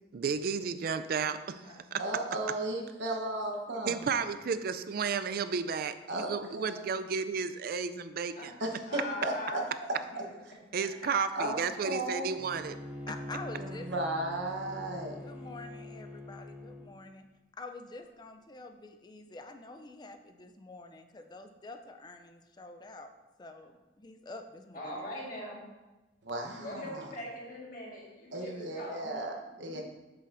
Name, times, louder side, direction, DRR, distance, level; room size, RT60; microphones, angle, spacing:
voice 1, 0.1-1.6 1.9-2.0 3.9-8.5 10.7-12.8, right 5 dB, 50° right, 12 dB, 0.4 m, -32 dB
voice 2, 2.0-4.0 6.1-6.9 8.6-9.6 11.3-12.3 13.6-15.2 26.3-27.1 28.3-29.8, right 1 dB, 70° right, 2 dB, 1.0 m, -35 dB
voice 3, 8.9-9.6 10.2-10.3 24.7-25.6 26.6-29.1 29.4-29.8, left 1 dB, 50° left, -4 dB, 1.7 m, -41 dB
Bowed string instrument, 12.4-16.9, left 1 dB, 10° right, 0.7 m, -44 dB
voice 4, 13.1-13.9 15.2-17.2 17.6-23.1 23.4-25.1, left 2 dB, 25° left, 7 dB, 0.4 m, -47 dB
7.9 x 6.8 x 2.6 m, 1.1 s
head